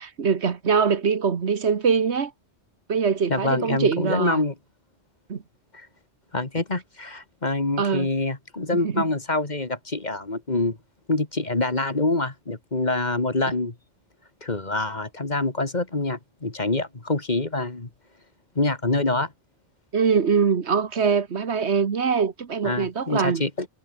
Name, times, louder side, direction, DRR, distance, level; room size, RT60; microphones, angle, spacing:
voice 1, 0.0-2.3 2.9-4.4 5.3-5.4 7.8-8.1 8.7-9.0 19.9-23.4, right 6 dB, 70° right, 1.6 m, -23 dB
voice 2, 3.3-4.5 5.7-5.9 6.3-10.8 11.1-13.7 14.4-17.9 18.6-19.3 22.6-23.7, left 2 dB, 40° left, 2.4 m, -26 dB
omnidirectional pair, 1.2 m